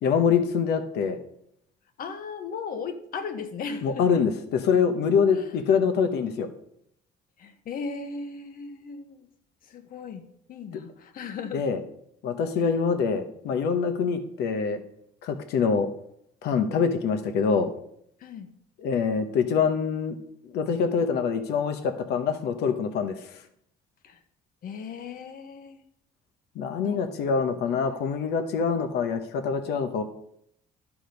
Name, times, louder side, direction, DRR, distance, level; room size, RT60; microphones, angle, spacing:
voice 1, 0.0-1.2 3.8-6.5 11.5-11.8 12.2-14.8 15.2-15.9 16.4-17.7 18.8-20.2 20.5-23.2 26.6-30.0, left 6 dB, 75° left, 8 dB, 1.0 m, -25 dB
voice 2, 2.0-4.2 5.3-5.6 7.4-9.3 9.6-10.2 10.5-11.7 12.5-12.8 18.2-18.5 24.0-24.2 24.6-25.8 26.8-27.1 27.4-28.0, left 5 dB, 60° left, 8 dB, 1.2 m, -37 dB
11.5 x 5.0 x 5.2 m, 0.72 s
cardioid pair, 110°, 17 cm